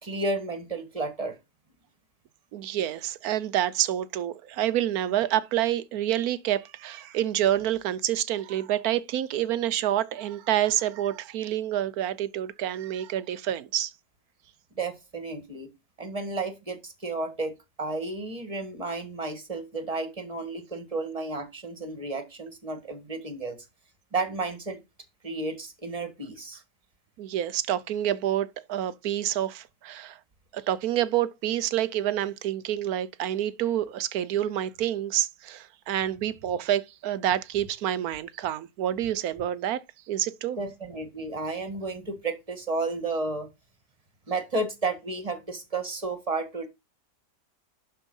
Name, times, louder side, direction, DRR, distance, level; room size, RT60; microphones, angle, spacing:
voice 1, 0.0-1.4 14.8-15.7 16.0-23.6 24.1-24.8 25.2-26.6 40.6-43.5 44.3-46.7, right 3 dB, 20° right, 1.7 m, -32 dB
voice 2, 2.5-13.9 27.2-30.2 30.5-40.6, right 12 dB, 70° right, 1.1 m, -28 dB
11.5 x 4.5 x 5.4 m
omnidirectional pair, 1.8 m